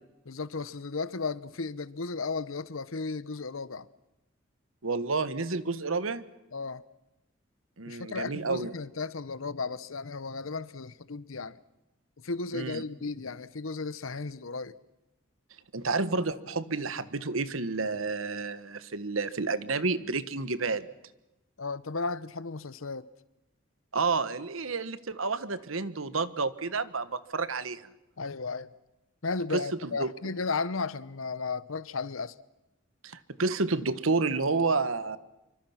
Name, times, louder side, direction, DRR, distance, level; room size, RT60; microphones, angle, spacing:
voice 1, 0.3-3.9 6.5-6.8 7.9-11.6 12.2-14.7 21.6-23.1 28.2-28.7 29.2-32.4, left 4 dB, 90° left, 1.0 m, -34 dB
voice 2, 4.8-6.2 7.8-8.7 12.5-12.8 15.7-20.9 23.9-27.9 29.5-30.1 33.0-35.2, right 3 dB, 90° right, 1.3 m, -30 dB
26.5 x 24.5 x 5.9 m
head